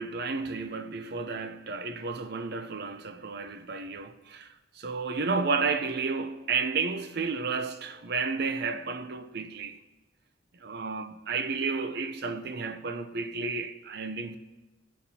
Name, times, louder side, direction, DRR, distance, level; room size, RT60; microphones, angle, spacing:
voice 1, 0.0-9.8 10.6-14.4, right 4 dB, 55° right, 0.6 m, -32 dB
15.0 x 8.2 x 2.8 m
head